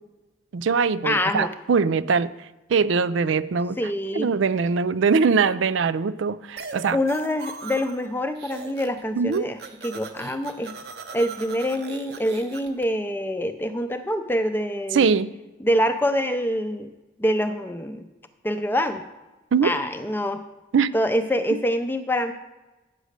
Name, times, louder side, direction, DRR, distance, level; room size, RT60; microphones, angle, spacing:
voice 1, 0.5-2.3 2.7-3.8 4.1-7.0 9.2-9.5 14.9-15.3 19.5-19.7 20.7-20.9, right 5 dB, 85° right, 15 dB, 0.4 m, -22 dB
voice 2, 1.0-1.5 3.8-4.3 6.9-10.7 11.1-15.1 15.6-16.9 17.2-18.1 18.4-19.0 19.6-20.4 20.9-22.3, equal, 10° left, 9 dB, 0.5 m, -25 dB
sound 1, 6.6-8.1 8.4-9.0 9.3-12.8, right 4 dB, 55° right, 0.8 m, -39 dB
9.2 x 6.3 x 6.5 m, 1.1 s
head